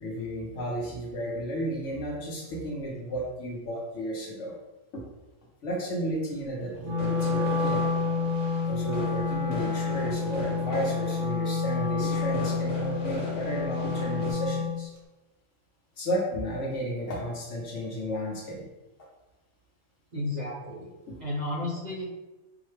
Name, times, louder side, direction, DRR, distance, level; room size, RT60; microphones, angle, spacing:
voice 1, 0.0-4.6 4.9-5.0 5.6-8.0 8.7-14.9 16.0-18.6 21.1-21.2, equal, 65° left, -2 dB, 1.1 m, -33 dB
sound 1, 6.7-14.3, left 3 dB, 85° left, 1.4 m, -38 dB
Wind instrument woodwind instrument, 6.8-14.8, left 4 dB, 65° right, 1.0 m, -29 dB
voice 2, 20.1-20.9 21.2-22.1, left 1 dB, 35° right, -6 dB, 1.0 m, -32 dB
4.7 x 2.1 x 3.2 m, 1.1 s
omnidirectional pair, 1.4 m